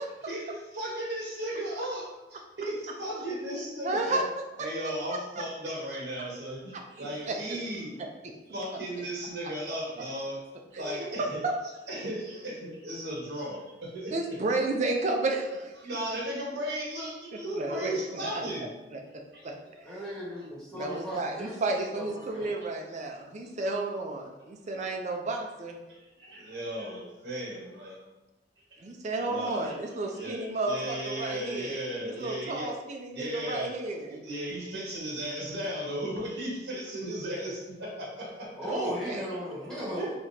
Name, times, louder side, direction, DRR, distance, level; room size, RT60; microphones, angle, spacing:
voice 1, 0.3-4.2 4.6-8.0 8.5-10.4 10.7-11.4 11.9-14.1 15.8-18.7 19.3-19.5 20.9-21.0 22.2-22.6 23.4-23.8 24.7-24.9 25.9-28.0 28.7-28.8 29.2-29.8 30.1-32.7 33.1-33.8 34.1-38.5 40.0-40.1, right 1 dB, 70° right, -3 dB, 1.1 m, -36 dB
voice 2, 3.8-4.2 6.7-6.8 7.2-7.6 10.7-11.1 11.4-11.5 14.1-15.7 17.6-19.0 19.4-19.6 20.7-25.8 28.8-34.2 38.7-39.3 39.9-40.1, right 2 dB, 40° right, 2 dB, 0.4 m, -32 dB
voice 3, 19.8-22.0 22.3-22.5 38.5-40.1, equal, 5° left, -9 dB, 1.3 m, -37 dB
3.6 x 2.9 x 2.7 m, 1.1 s
head